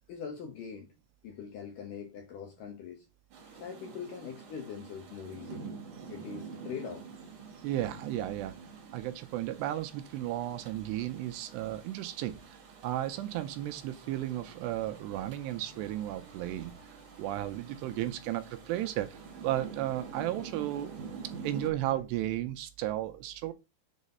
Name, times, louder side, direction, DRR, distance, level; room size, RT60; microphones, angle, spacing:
voice 1, 0.1-0.9 1.2-3.0 3.4-5.8 6.1-7.3, left 7 dB, 70° left, 2.0 m, -42 dB
Rain, 3.3-21.7, right 5 dB, 50° right, 3.2 m, -47 dB
voice 2, 7.6-8.6 8.9-12.6 12.8-20.9 21.4-23.5, right 13 dB, 80° right, 2.7 m, -34 dB
sound 1, 13.3-22.0, right 4 dB, 30° right, 2.4 m, -55 dB
7.4 x 4.0 x 5.4 m
omnidirectional pair, 5.1 m